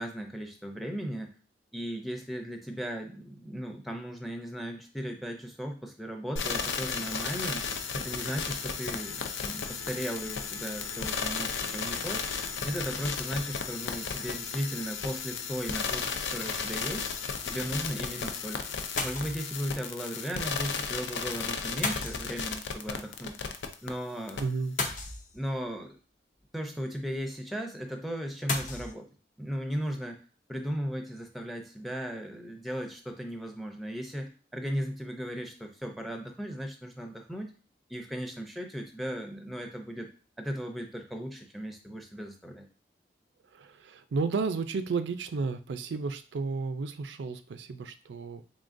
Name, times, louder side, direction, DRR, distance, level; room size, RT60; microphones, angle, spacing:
voice 1, 0.0-1.3 1.7-7.7 7.9-12.3 12.6-16.1 16.3-17.1 17.5-18.6 19.0-23.3 23.8-24.4 25.3-26.0 26.5-29.1 29.4-30.2 30.5-37.5 37.9-40.1 40.4-42.6, equal, ahead, 3 dB, 0.5 m, -36 dB
sound 1, 6.4-23.9 24.3-24.4, left 5 dB, 90° left, 0.5 m, -34 dB
sound 2, 19.0-19.6 21.8-22.8 24.8-25.7 28.5-28.9, left 3 dB, 45° left, 0.6 m, -34 dB
voice 2, 24.4-24.8 43.5-48.4, right 4 dB, 90° right, 10 dB, 0.4 m, -32 dB
3.7 x 3.6 x 2.5 m, 0.37 s
head